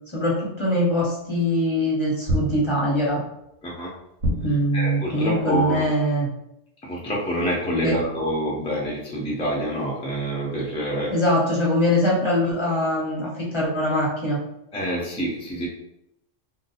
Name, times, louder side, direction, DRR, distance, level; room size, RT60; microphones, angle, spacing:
voice 1, 0.1-3.2 4.4-6.3 7.8-8.0 11.1-14.4, equal, 30° left, -5 dB, 0.7 m, -22 dB
sound 1, 2.3-3.1 4.2-5.0, equal, 85° right, 1.1 m, -27 dB
voice 2, 4.7-5.9 6.8-11.1 14.7-15.7, equal, 10° left, -4 dB, 0.3 m, -27 dB
2.6 x 2.2 x 4.0 m, 0.83 s
omnidirectional pair, 1.3 m